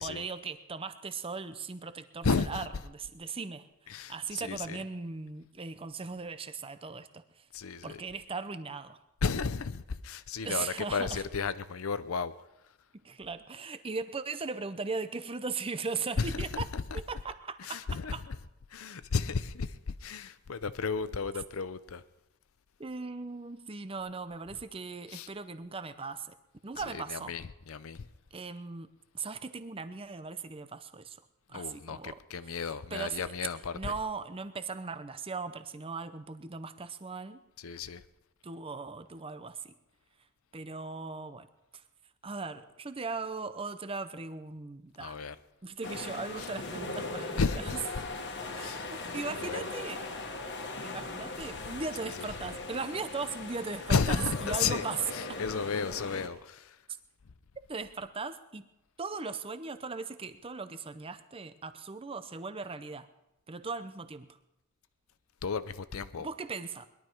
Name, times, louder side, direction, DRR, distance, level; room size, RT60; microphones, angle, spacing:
voice 1, 0.0-2.6 2.9-3.7 4.1-7.2 7.8-9.0 10.4-11.2 13.0-16.7 16.9-18.2 22.8-26.3 26.6-27.3 28.3-31.2 31.5-32.2 32.9-33.3 33.7-37.4 38.4-39.7 40.5-41.5 42.2-45.2 45.6-47.4 48.5-50.0 50.8-55.0 55.3-55.4 57.7-58.7 59.0-63.1 63.5-64.3 66.2-66.9, right 4 dB, 25° right, 0.7 m, -38 dB
voice 2, 2.2-2.7 3.9-4.8 7.5-8.0 9.2-12.3 16.2-17.0 17.6-18.4 18.7-22.0 25.1-25.3 26.9-28.1 31.5-33.9 37.6-38.0 45.0-45.4 46.4-46.5 47.4-48.1 48.6-49.0 49.4-49.6 52.0-52.3 53.9-54.8 55.1-56.8 65.4-66.3, left 5 dB, 70° left, 0.6 m, -33 dB
sound 1, 45.8-56.3, left 3 dB, 55° left, 1.5 m, -39 dB
21.0 x 12.0 x 4.6 m
head